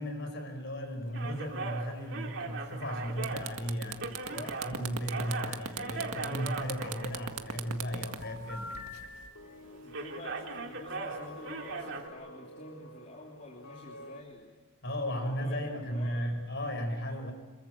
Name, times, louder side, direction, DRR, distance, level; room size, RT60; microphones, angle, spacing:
voice 1, 0.0-8.7 14.8-17.3, equal, 50° left, 6 dB, 5.3 m, -35 dB
sound 1, 1.1-4.7 5.0-7.5 8.2-9.1 9.3-9.6 9.9-12.1, right 3 dB, 55° right, 2.8 m, -39 dB
sound 2, 2.7-2.9 3.2-9.3, right 6 dB, 80° right, 1.8 m, -39 dB
sound 3, 3.9-14.2, left 1 dB, 80° left, 2.5 m, -51 dB
voice 2, 4.1-4.6 9.6-14.5 15.1-16.3, left 2 dB, 35° left, -2 dB, 3.0 m, -48 dB
27.5 x 22.5 x 7.8 m, 1.3 s
head